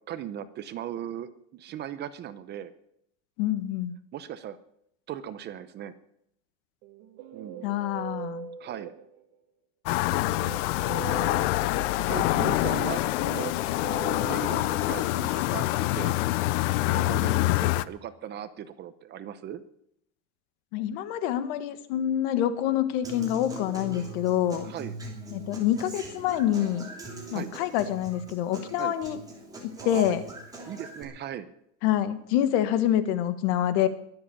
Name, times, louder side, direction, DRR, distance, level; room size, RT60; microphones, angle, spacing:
voice 1, 0.1-2.7 4.1-4.6 5.1-5.9 7.3-7.7 8.6-8.9 10.8-11.1 12.1-13.0 13.3-13.5 14.3-16.1 16.9-19.6 24.6-25.0 27.3-27.5 28.8-28.9 29.8-30.2 30.7-31.5, right 10 dB, 30° right, 13 dB, 0.7 m, -38 dB
voice 2, 3.4-3.9 7.6-8.5 20.7-24.6 25.3-26.9 27.3-29.2 29.6-30.2 31.8-33.9, left 11 dB, 60° left, 11 dB, 1.6 m, -26 dB
Guitar, 6.8-9.3 10.1-15.5, right 9 dB, 60° right, 2.0 m, -42 dB
sound 1, 9.9-17.8, left 18 dB, 75° left, 0.7 m, -26 dB
Human voice / Acoustic guitar, 23.0-31.0, right 1 dB, 10° right, 3.2 m, -42 dB
22.5 x 7.7 x 7.1 m, 0.74 s
cardioid pair, 165°, 37 cm